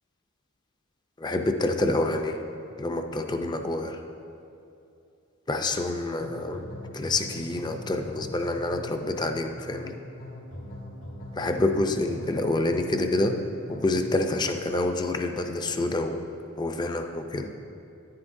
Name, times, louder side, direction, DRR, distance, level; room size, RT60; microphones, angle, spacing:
voice 1, 1.2-2.4 2.8-4.0 5.5-6.6 6.9-10.0 11.3-13.4 13.7-16.2 16.6-17.5, left 2 dB, 20° left, 5 dB, 0.4 m, -27 dB
sound 1, 6.2-14.1, left 1 dB, 85° left, 2.2 m, -41 dB
10.5 x 9.6 x 2.6 m, 2.7 s
head